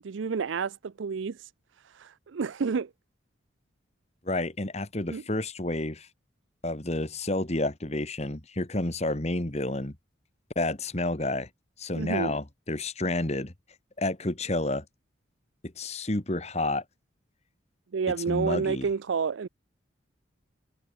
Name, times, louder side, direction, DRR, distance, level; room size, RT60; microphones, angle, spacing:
voice 1, 0.0-1.5 1.8-2.9 5.1-5.2 11.9-12.4 17.9-19.5, right 5 dB, 75° right, 0.5 m, -30 dB
voice 2, 4.2-6.1 6.6-10.0 10.6-11.5 11.8-13.5 14.0-14.8 15.6-16.8 18.3-18.9, left 2 dB, 35° left, 1.8 m, -30 dB
head